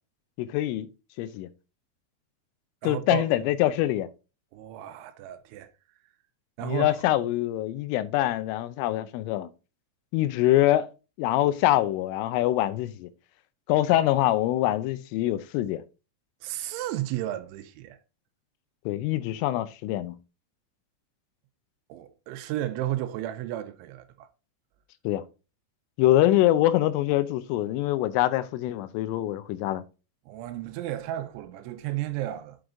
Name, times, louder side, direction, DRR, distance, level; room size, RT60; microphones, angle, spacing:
voice 1, 0.4-0.9 1.2-1.5 2.8-4.1 6.6-9.5 10.1-10.9 11.2-13.1 13.7-15.8 18.9-20.2 25.0-25.2 26.0-29.8, left 14 dB, 85° left, 3.1 m, -24 dB
voice 2, 2.8-3.2 4.5-5.7 6.6-6.9 16.4-18.0 21.9-24.3 30.3-32.6, right 13 dB, 80° right, 2.9 m, -33 dB
7.9 x 4.8 x 3.8 m
omnidirectional pair, 5.8 m